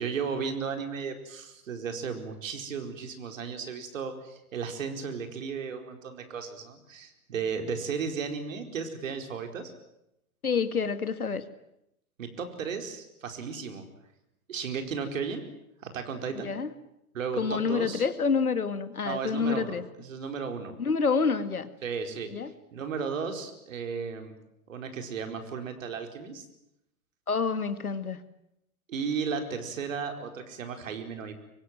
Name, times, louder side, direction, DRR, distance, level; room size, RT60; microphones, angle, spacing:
voice 1, 0.0-9.7 12.2-13.8 14.5-15.5 15.8-16.5 17.1-18.0 19.0-20.7 21.8-22.3 22.7-24.3 24.7-26.4 28.9-31.3, right 6 dB, 60° right, 6 dB, 4.7 m, -34 dB
voice 2, 10.4-11.4 16.3-16.7 17.4-19.8 20.8-21.7 22.3-22.5 27.3-28.2, left 5 dB, 80° left, 12 dB, 2.1 m, -28 dB
25.0 x 24.0 x 9.3 m, 0.82 s
figure-of-eight pair, 100°, 43 cm